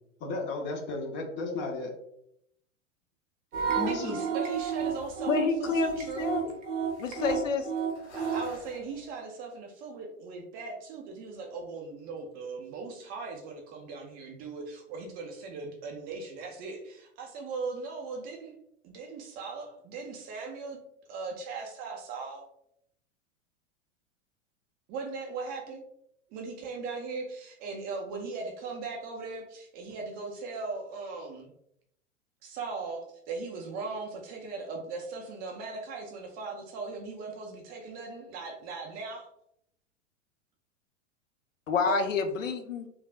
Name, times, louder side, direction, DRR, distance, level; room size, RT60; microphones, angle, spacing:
voice 1, 0.2-1.9 3.7-4.2, left 3 dB, 30° left, 2 dB, 0.6 m, -34 dB
sound 1, 3.5-9.1, right 1 dB, 60° left, 1.3 m, -52 dB
sound 2, 3.5-8.5, right 6 dB, 75° right, 0.7 m, -31 dB
voice 2, 3.9-6.3 8.1-18.5 18.8-20.8 21.1-22.5 24.9-25.8 26.3-31.5 32.4-39.3 41.9-42.1, right 4 dB, 25° right, 2 dB, 0.3 m, -39 dB
voice 3, 5.3-6.6 7.0-7.7 41.7-42.9, left 5 dB, 90° left, 8 dB, 0.5 m, -28 dB
3.2 x 2.4 x 2.3 m, 0.74 s
hypercardioid pair, 95°, 37 cm